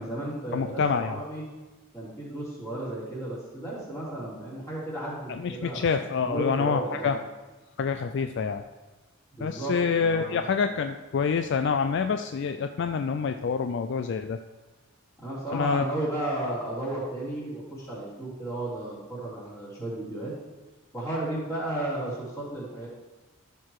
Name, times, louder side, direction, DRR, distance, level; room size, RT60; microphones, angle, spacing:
voice 1, 0.0-1.4 1.9-7.2 9.3-10.4 15.2-20.3 20.9-22.9, right 1 dB, 15° left, -8 dB, 3.4 m, -34 dB
voice 2, 0.5-1.2 5.3-7.2 7.8-8.6 9.4-14.4 15.5-15.8, left 5 dB, 55° left, 7 dB, 0.4 m, -27 dB
14.0 x 4.7 x 4.7 m, 1.2 s
head